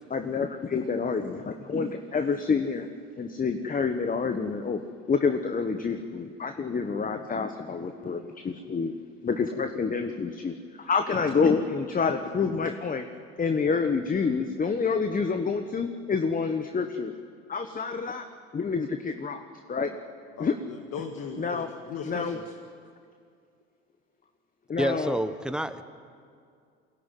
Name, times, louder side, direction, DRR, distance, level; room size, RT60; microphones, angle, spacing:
voice 1, 0.1-2.9 3.2-4.8 5.1-8.9 9.2-13.0 13.4-17.1 17.5-18.2 18.5-19.4 19.7-20.0 20.4-20.5 21.4-21.7 22.0-22.4 24.7-25.2, left 5 dB, 25° left, 7 dB, 1.3 m, -28 dB
voice 2, 20.4-22.4, left 6 dB, 55° left, 4 dB, 1.9 m, -38 dB
voice 3, 24.8-25.8, right 1 dB, 5° right, 10 dB, 1.2 m, -28 dB
22.0 x 17.0 x 9.2 m, 2.3 s
hypercardioid pair, 75°, 30 cm